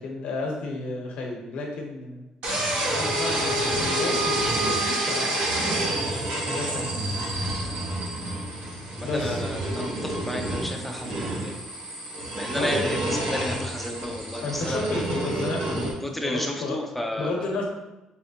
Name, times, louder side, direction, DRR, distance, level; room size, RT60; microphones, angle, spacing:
voice 1, 0.0-2.2 2.9-5.3 6.5-7.0 9.0-9.4 12.5-12.7 13.1-13.2 14.4-15.9 16.2-16.8 17.2-17.7, left 2 dB, 75° left, 0 dB, 0.9 m, -32 dB
sound 1, 2.4-15.9, right 1 dB, 90° right, 1.1 m, -28 dB
voice 2, 9.0-11.5 12.3-14.9 15.8-17.5, left 1 dB, 5° left, 2 dB, 0.4 m, -32 dB
4.3 x 3.2 x 2.8 m, 1.0 s
cardioid pair, 170°, 2 cm